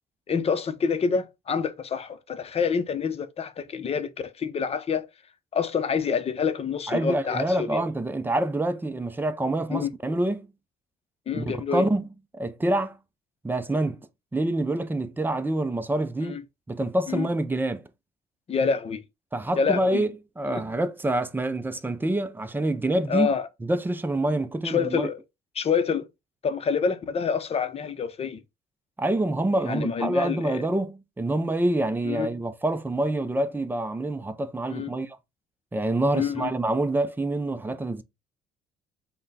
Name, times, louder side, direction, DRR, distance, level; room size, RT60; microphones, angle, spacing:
voice 1, 0.3-5.1 5.5-7.8 9.7-9.9 11.3-11.8 16.3-16.4 17.1-17.3 18.5-19.0 19.6-20.0 20.5-20.6 23.1-23.5 24.6-25.2 25.5-26.1 26.4-28.4 29.6-30.7 32.0-32.3 34.7-34.9 36.1-36.5, left 6 dB, 35° left, 0.7 m, -27 dB
voice 2, 6.9-10.5 11.4-11.5 11.7-12.1 12.3-13.0 13.4-14.0 14.3-16.4 16.7-17.8 19.3-23.3 23.6-25.1 29.0-35.2 35.7-38.0, right 1 dB, 10° right, 0.5 m, -26 dB
5.4 x 2.2 x 4.0 m
cardioid pair, 110°, 17 cm